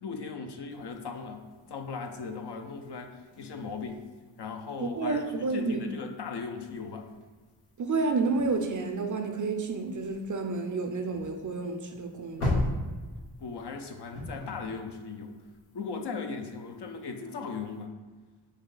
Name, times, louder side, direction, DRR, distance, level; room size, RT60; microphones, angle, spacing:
voice 1, 0.0-4.0 4.4-7.1 13.4-15.4 15.7-17.9, left 5 dB, 55° left, 4 dB, 0.7 m, -38 dB
sound 1, 0.7-17.9, left 1 dB, 80° left, 1.2 m, -40 dB
voice 2, 4.8-5.9 7.8-12.7, right 3 dB, 40° right, 5 dB, 0.5 m, -30 dB
4.7 x 2.7 x 3.8 m, 1.3 s
cardioid pair, 75°, 49 cm